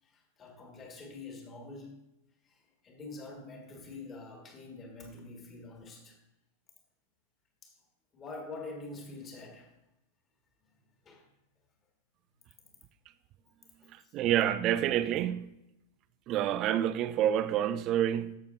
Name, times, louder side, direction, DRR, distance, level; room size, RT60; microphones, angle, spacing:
voice 1, 0.0-2.0 2.4-6.2 7.6-7.8 8.1-9.7 10.6-11.3 13.8-14.2, left 3 dB, 25° left, 2.0 m, -46 dB
voice 2, 13.9-15.4 16.3-18.3, right 11 dB, 35° right, 0.5 m, -28 dB
13.5 x 6.6 x 2.6 m
figure-of-eight pair, 90°, 0 cm